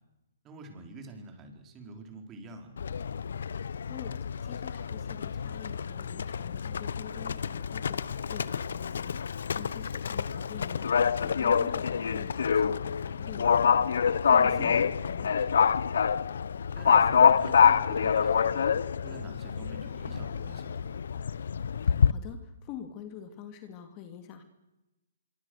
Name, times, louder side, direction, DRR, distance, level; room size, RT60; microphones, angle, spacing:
voice 1, 0.4-2.8 9.6-9.7 11.2-11.4 14.5-14.9 16.7-20.9, right 2 dB, 20° right, 4 dB, 4.9 m, -46 dB
Livestock farm animals working animals, 2.8-22.1, left 7 dB, 70° left, 0.9 m, -27 dB
voice 2, 4.4-15.8 21.8-24.4, left 8 dB, 30° left, 7 dB, 2.6 m, -46 dB
25.5 x 24.0 x 6.7 m, 1.0 s
hypercardioid pair, 150°, 0 cm